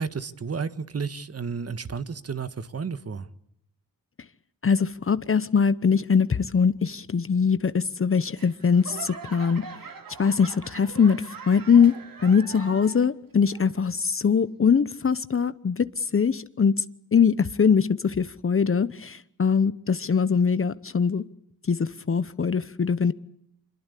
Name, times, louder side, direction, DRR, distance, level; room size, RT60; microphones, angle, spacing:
voice 1, 0.0-3.3, right 5 dB, 45° right, 1.7 m, -32 dB
voice 2, 4.6-9.6 10.2-11.9 12.2-16.7 17.1-21.2 21.7-23.1, left 6 dB, 40° left, 1.0 m, -22 dB
Laughter / Clapping / Crowd, 8.4-13.1 13.5-14.0 14.6-14.7, right 5 dB, 70° right, 3.7 m, -42 dB
26.0 x 22.0 x 8.4 m
cardioid pair, 90°, 35 cm